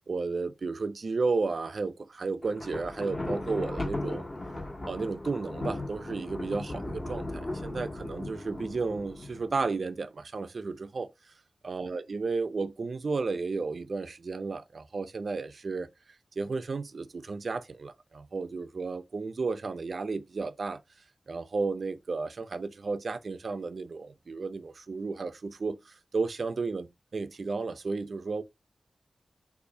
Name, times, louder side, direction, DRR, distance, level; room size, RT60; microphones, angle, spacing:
voice 1, 0.1-4.3 4.9-11.1 11.6-15.9 16.4-20.8 21.3-28.4, right 4 dB, 60° right, 0.5 m, -33 dB
Thunder, 2.4-9.7, left 2 dB, 35° left, 1.7 m, -37 dB
6.6 x 2.7 x 2.7 m
wide cardioid pair, 115°, 0 cm